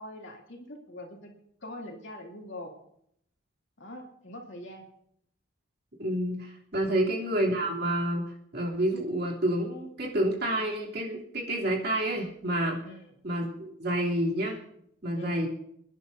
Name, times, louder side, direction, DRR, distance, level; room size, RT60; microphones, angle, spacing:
voice 1, 0.0-1.3 1.6-2.7 3.8-4.8 12.8-13.0 15.1-15.4, left 1 dB, 65° left, 0 dB, 2.8 m, -43 dB
voice 2, 6.0-12.8 13.2-14.6 15.0-15.5, right 1 dB, 55° right, -2 dB, 3.1 m, -29 dB
28.0 x 10.5 x 2.7 m, 0.73 s
head